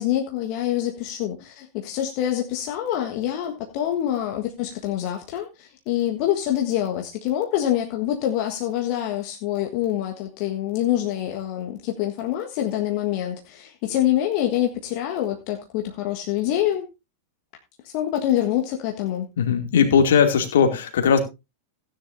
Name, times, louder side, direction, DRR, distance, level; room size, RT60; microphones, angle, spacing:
voice 1, 0.0-16.9 17.9-19.3, left 12 dB, 45° left, 1.5 m, -25 dB
voice 2, 19.4-21.2, left 7 dB, 60° left, 2.5 m, -18 dB
16.5 x 10.0 x 2.7 m
figure-of-eight pair, 90°, 0 cm